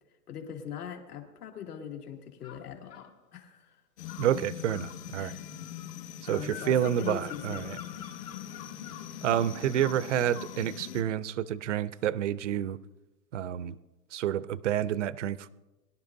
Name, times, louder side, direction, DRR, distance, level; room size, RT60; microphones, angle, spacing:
voice 1, 0.3-3.8 5.2-5.5 6.3-7.8, left 8 dB, 70° left, 2 dB, 2.5 m, -41 dB
sound 1, 2.4-3.1 4.0-10.6, left 10 dB, 85° left, 5.0 m, -47 dB
sound 2, 4.0-11.0, left 10 dB, 45° left, 1.5 m, -42 dB
voice 2, 4.2-5.3 6.3-7.8 9.2-12.8 13.3-13.8 14.1-15.5, right 10 dB, 50° right, 18 dB, 0.5 m, -29 dB
23.0 x 11.5 x 2.6 m, 1.1 s
hypercardioid pair, 170°, 48 cm